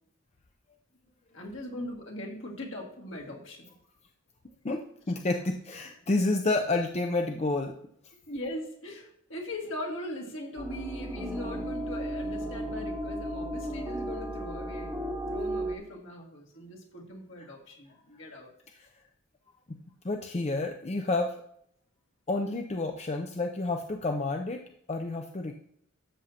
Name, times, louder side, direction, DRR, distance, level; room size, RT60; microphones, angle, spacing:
voice 1, 1.3-3.7 8.3-14.9 15.3-18.5, left 1 dB, 65° left, -1 dB, 2.1 m, -40 dB
voice 2, 4.6-7.7 19.7-19.8 20.0-21.4 22.3-24.6 24.9-25.5, left 2 dB, 30° left, 4 dB, 0.5 m, -29 dB
sound 1, 10.6-15.7, right 1 dB, 10° right, 1.0 m, -34 dB
12.5 x 7.1 x 2.8 m, 0.70 s
head